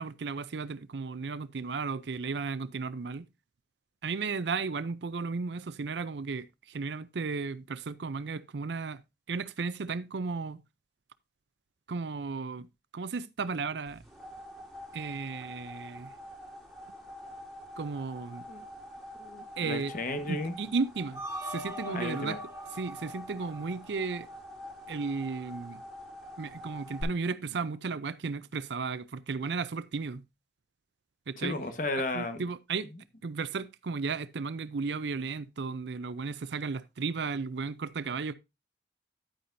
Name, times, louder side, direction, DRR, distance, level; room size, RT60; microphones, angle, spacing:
voice 1, 0.0-3.3 4.0-9.0 9.3-10.6 11.9-12.7 12.9-14.0 14.9-16.1 17.8-18.4 19.6-19.9 20.3-22.4 22.7-24.3 24.9-25.8 26.4-30.2 31.3-31.6 32.1-32.9 33.2-38.3, right 4 dB, 80° right, 0.5 m, -34 dB
sound 1, 13.9-27.0, equal, ahead, 4.7 m, -46 dB
voice 2, 19.2-20.5 21.9-22.4 31.4-32.4, left 2 dB, 45° left, 1.3 m, -34 dB
sound 2, 21.2-24.3, equal, 15° right, 4.9 m, -42 dB
10.5 x 9.2 x 2.6 m
head